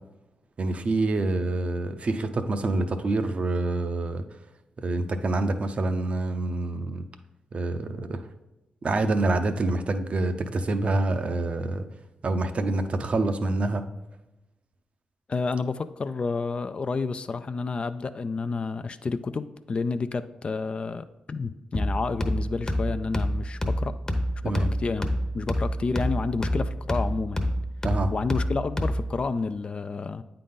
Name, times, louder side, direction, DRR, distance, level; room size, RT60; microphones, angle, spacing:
voice 1, 0.6-4.2 4.8-7.0 7.5-8.2 8.8-11.9 12.2-13.8 24.4-24.7 27.8-28.1, right 2 dB, 50° right, 8 dB, 0.6 m, -26 dB
voice 2, 15.3-24.0 24.4-25.1 25.3-27.5 28.1-30.2, left 4 dB, 45° left, 11 dB, 0.4 m, -30 dB
sound 1, 21.7-29.2, equal, 25° left, 0.9 m, -28 dB
8.4 x 3.8 x 3.8 m, 0.97 s
supercardioid pair, 55°, 3 cm